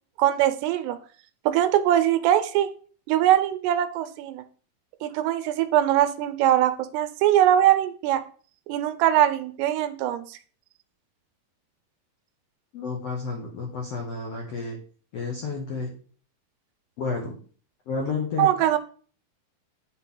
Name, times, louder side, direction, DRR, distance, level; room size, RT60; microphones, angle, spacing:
voice 1, 0.2-1.0 1.5-2.7 3.1-4.4 5.0-8.2 8.7-10.4 18.4-18.8, right 12 dB, 85° right, 11 dB, 2.7 m, -22 dB
voice 2, 12.7-14.8 15.1-15.9 17.0-17.4 17.9-18.5, left 4 dB, 85° left, 0 dB, 1.4 m, -31 dB
10.0 x 4.4 x 3.7 m, 0.42 s
omnidirectional pair, 4.7 m